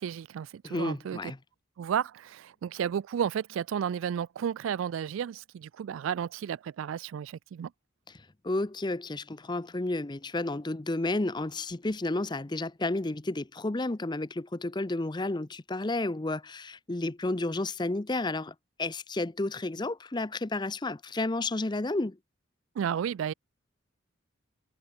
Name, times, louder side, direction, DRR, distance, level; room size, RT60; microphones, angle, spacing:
voice 1, 0.0-1.2 1.8-7.7 22.8-23.3, right 8 dB, 85° right, 0.3 m, -32 dB
voice 2, 0.6-1.4 8.1-22.2, left 2 dB, 20° left, 0.6 m, -31 dB
head